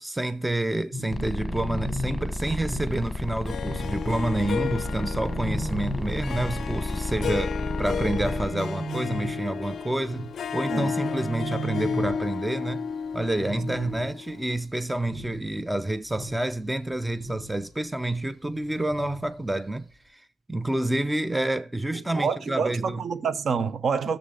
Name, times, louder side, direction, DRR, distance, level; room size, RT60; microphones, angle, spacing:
voice 1, 0.0-20.2 20.5-23.0, right 1 dB, 10° right, 0.4 m, -29 dB
sound 1, 0.9-12.6 12.9-13.1 13.3-14.3 14.6-15.7 16.0-17.6 18.9-19.3 19.7-19.8, right 1 dB, 25° right, 2.6 m, -36 dB
sound 2, 1.1-8.5, left 1 dB, 10° left, 1.2 m, -32 dB
Harp, 3.5-14.6, left 6 dB, 60° left, 0.4 m, -33 dB
voice 2, 21.9-24.2, right 5 dB, 50° right, 0.6 m, -27 dB
12.5 x 6.8 x 3.8 m
cardioid pair, 90°, 0 cm